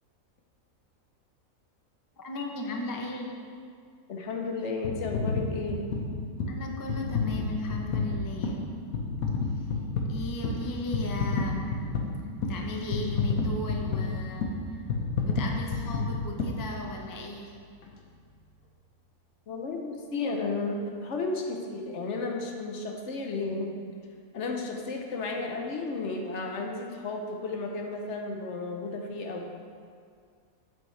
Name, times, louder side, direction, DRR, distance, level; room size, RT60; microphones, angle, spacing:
voice 1, 2.2-3.4 6.5-8.6 9.5-9.7 10.1-11.9 12.5-14.9 15.2-17.5, left 1 dB, 30° left, 1 dB, 0.4 m, -36 dB
voice 2, 4.1-5.8 19.5-23.8 24.3-29.5, left 3 dB, 60° left, 2 dB, 1.0 m, -33 dB
sound 1, 4.8-17.2 17.8-17.9, left 3 dB, 85° left, 1.3 m, -31 dB
8.0 x 7.2 x 3.2 m, 2.1 s
omnidirectional pair, 1.5 m